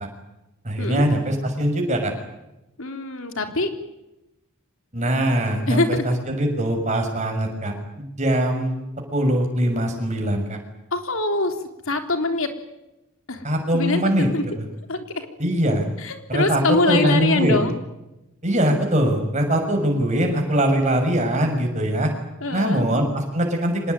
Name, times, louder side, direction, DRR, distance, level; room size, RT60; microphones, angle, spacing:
voice 1, 0.6-2.1 4.9-8.8 9.1-10.6 13.4-14.3 14.6-14.7 15.4-15.8 16.3-17.7 18.4-22.1 22.5-23.9, right 1 dB, 30° right, 3 dB, 6.4 m, -22 dB
voice 2, 2.8-3.7 5.7-6.0 10.9-11.5 11.9-12.5 13.3-13.4 13.7-14.5 14.9-15.3 16.0-17.7 22.4-22.8, left 2 dB, 65° left, 6 dB, 3.5 m, -23 dB
25.5 x 20.0 x 9.8 m, 0.95 s
head